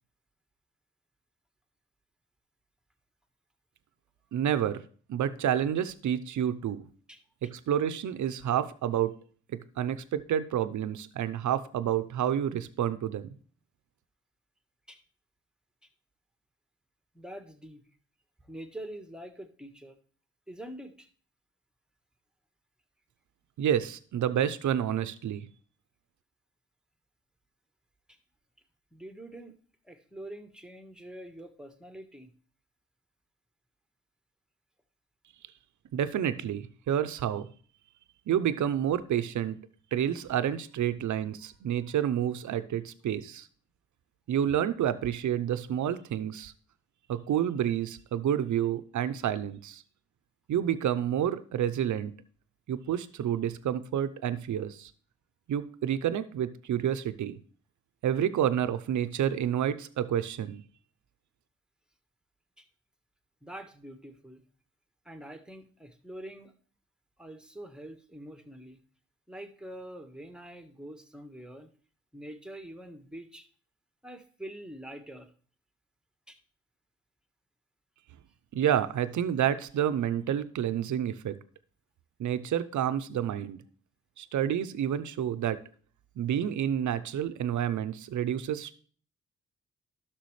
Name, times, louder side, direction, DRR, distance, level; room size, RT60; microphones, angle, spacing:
voice 1, 4.3-4.8 5.1-6.8 7.4-9.1 9.5-13.3 23.6-25.5 35.9-37.5 38.3-39.6 39.9-43.5 44.3-46.5 47.1-49.8 50.5-52.1 52.7-54.9 55.5-57.4 58.0-60.6 78.5-81.3 82.2-83.6 84.2-85.6 86.2-88.7, right 10 dB, 70° right, 12 dB, 0.7 m, -29 dB
voice 2, 7.1-7.5 14.9-15.0 15.8-15.9 17.1-17.9 18.5-20.0 20.5-21.1 28.1-28.2 28.9-29.5 29.8-32.3 62.6-62.7 63.4-64.4 65.0-66.5 67.2-68.8 69.3-71.7 72.1-73.5 74.0-75.3 76.3-76.4, right 1 dB, 5° right, 7 dB, 1.3 m, -45 dB
11.5 x 6.2 x 3.2 m, 0.42 s
supercardioid pair, 60°, 31 cm